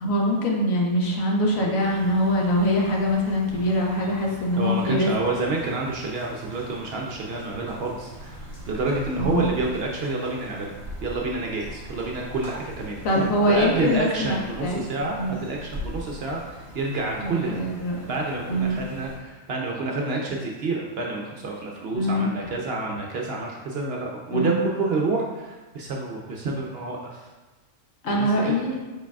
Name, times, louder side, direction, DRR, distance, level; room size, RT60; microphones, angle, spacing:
voice 1, 0.0-5.1 9.2-9.5 13.0-14.8 15.2-15.4 17.2-17.9 18.5-18.8 21.9-22.3 24.3-24.6 28.0-28.7, equal, 80° left, -1 dB, 1.2 m, -23 dB
sound 1, 1.8-19.2, equal, 15° left, 0.7 m, -41 dB
voice 2, 4.6-10.7 11.0-17.6 18.1-27.3 28.1-28.5, right 3 dB, 65° right, -1 dB, 0.7 m, -29 dB
4.7 x 4.6 x 2.3 m, 1.2 s
omnidirectional pair, 1.4 m